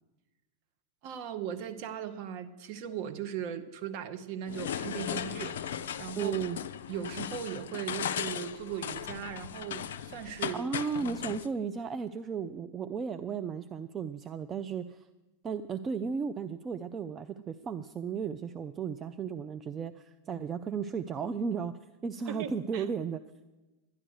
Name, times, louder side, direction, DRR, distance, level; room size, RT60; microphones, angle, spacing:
voice 1, 1.0-6.4 6.9-10.7 11.0-11.2 22.3-22.9, right 9 dB, 45° right, 8 dB, 0.9 m, -38 dB
sound 1, 4.5-11.5, left 9 dB, 60° left, 0.4 m, -37 dB
voice 2, 6.2-6.6 10.5-15.1 15.4-23.2, right 6 dB, 25° right, 9 dB, 0.4 m, -35 dB
11.0 x 11.0 x 6.4 m, 1.1 s
figure-of-eight pair, 90°, 0 cm